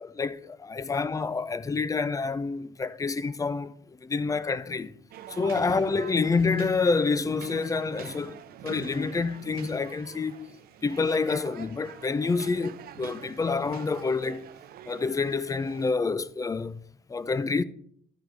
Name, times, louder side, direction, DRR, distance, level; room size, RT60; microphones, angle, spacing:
voice 1, 0.0-5.0 5.3-10.5 10.8-14.4 14.9-16.8 17.1-17.6, left 4 dB, 20° left, 0.5 m, -28 dB
sound 1, 5.1-15.9, right 10 dB, 65° right, 0.7 m, -45 dB
12.5 x 4.9 x 5.9 m
cardioid pair, 110°, 17 cm